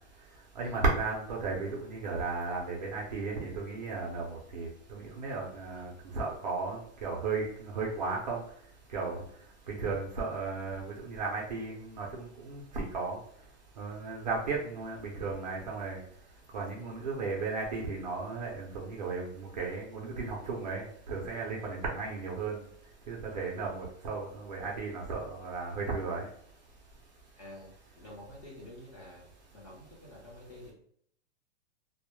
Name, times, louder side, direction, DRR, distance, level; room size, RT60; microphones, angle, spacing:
voice 1, 0.6-8.4 8.9-9.2 9.7-13.2 13.8-16.0 16.5-22.6 23.1-26.3, right 4 dB, 40° right, -2 dB, 0.4 m, -35 dB
voice 2, 27.4-29.3 29.5-30.7, left 1 dB, 30° left, -4 dB, 0.7 m, -49 dB
2.1 x 2.0 x 2.9 m, 0.64 s
supercardioid pair, 175°, 36 cm